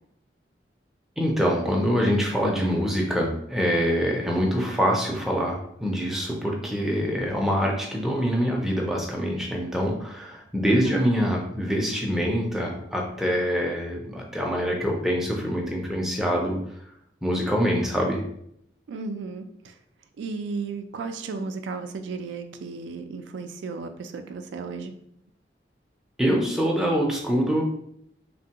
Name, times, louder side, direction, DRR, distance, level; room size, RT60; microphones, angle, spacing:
voice 1, 1.2-16.6 17.2-18.2 26.2-27.6, equal, ahead, -1 dB, 0.4 m, -25 dB
voice 2, 10.7-11.1 18.9-19.7 20.2-24.9, right 4 dB, 80° right, 7 dB, 0.3 m, -34 dB
3.3 x 2.2 x 2.8 m, 0.71 s
head